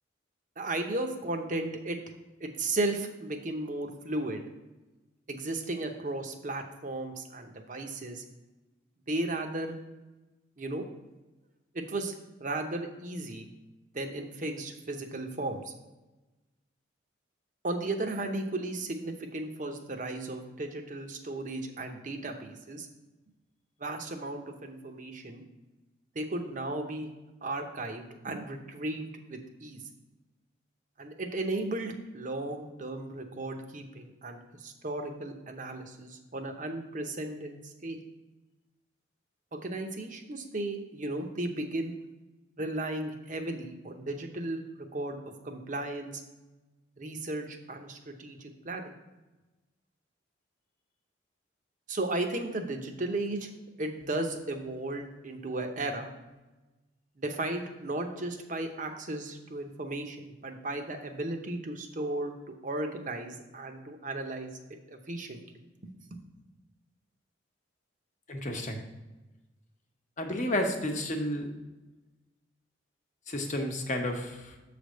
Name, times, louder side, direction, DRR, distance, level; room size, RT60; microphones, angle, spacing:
voice 1, 0.6-2.0 2.4-4.5 5.3-8.2 9.1-9.8 10.6-10.8 11.7-12.1 12.4-13.5 13.9-15.7 17.6-22.9 23.8-25.4 26.1-27.1 27.4-29.8 31.0-38.0 39.5-41.9 42.6-46.2 47.0-48.9 51.9-53.5 53.8-56.1 57.2-65.4 65.8-66.2, right 2 dB, 45° right, 5 dB, 0.8 m, -35 dB
voice 2, 68.3-68.8 70.2-71.5 73.3-74.5, left 1 dB, 40° left, 3 dB, 1.0 m, -31 dB
7.1 x 3.4 x 6.3 m, 1.1 s
head